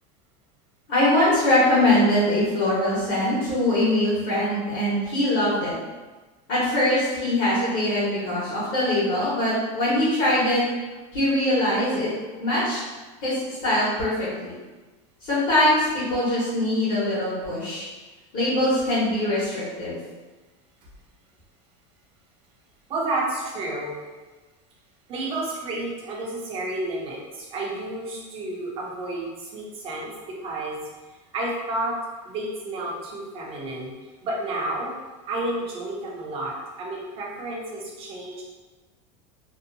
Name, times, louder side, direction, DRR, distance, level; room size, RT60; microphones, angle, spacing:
voice 1, 0.9-5.7 6.5-10.6 11.1-12.1 12.4-12.8 13.2-14.5 15.2-17.9 18.3-20.0, left 1 dB, 55° left, -10 dB, 1.2 m, -22 dB
voice 2, 22.9-23.9 25.1-30.8 31.1-32.0 32.2-34.9 35.2-38.4, right 2 dB, 30° right, -3 dB, 0.6 m, -31 dB
2.7 x 2.2 x 2.6 m, 1.3 s
supercardioid pair, 145°, 18 cm